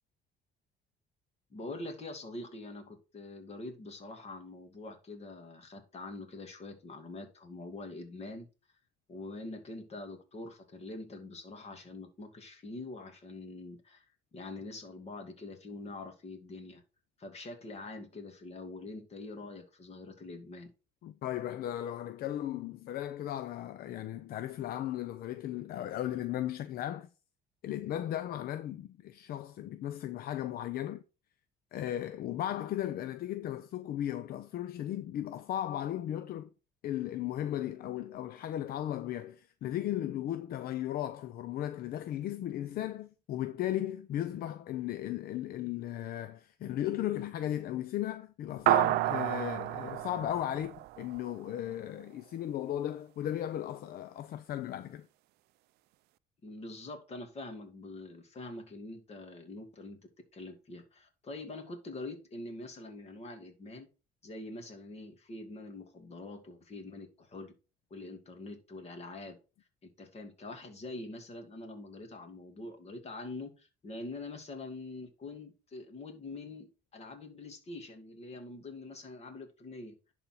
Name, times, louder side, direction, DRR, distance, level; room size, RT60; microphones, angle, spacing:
voice 1, 1.5-8.5 9.1-14.1 14.3-16.8 17.2-20.7 56.4-60.0 60.3-63.9 64.2-67.5 67.9-69.4 69.8-80.0, left 2 dB, 40° left, 2.4 m, -44 dB
voice 2, 21.0-27.1 27.6-31.0 31.7-36.5 36.8-55.1, left 12 dB, 65° left, 0.6 m, -36 dB
sound 1, 48.7-51.4, right 17 dB, 75° right, 0.4 m, -30 dB
11.0 x 4.3 x 4.4 m
cardioid pair, 110°, 17 cm